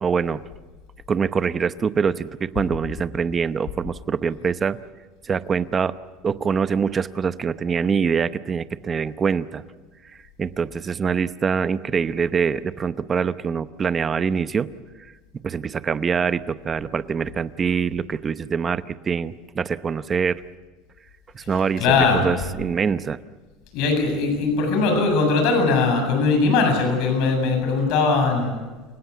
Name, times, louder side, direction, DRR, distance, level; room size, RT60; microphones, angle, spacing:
voice 1, 0.0-0.4 1.1-4.8 5.2-5.9 6.2-9.6 10.4-14.7 15.4-20.4 21.3-23.2, right 6 dB, 20° right, 13 dB, 0.7 m, -24 dB
voice 2, 21.8-22.5 23.7-28.5, left 4 dB, 60° left, 4 dB, 7.5 m, -20 dB
29.0 x 17.0 x 8.3 m, 1.3 s
cardioid pair, 150°, 0 cm